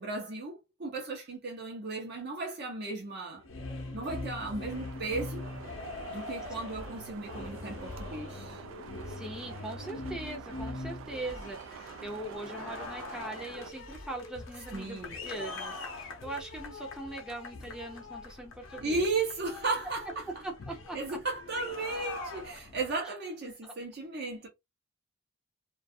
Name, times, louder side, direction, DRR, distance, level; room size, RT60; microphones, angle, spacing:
voice 1, 0.0-3.4 3.9-5.5 6.1-8.6 14.7-15.1 18.8-20.3 20.9-24.5, right 3 dB, 55° right, 0.7 m, -35 dB
sound 1, 3.4-23.0, left 3 dB, 75° left, 0.6 m, -42 dB
sound 2, 4.7-13.7, right 7 dB, 80° right, 0.3 m, -47 dB
voice 2, 9.1-19.0 20.4-21.2 23.6-23.7, right 2 dB, 5° right, 0.5 m, -41 dB
2.4 x 2.3 x 2.6 m
head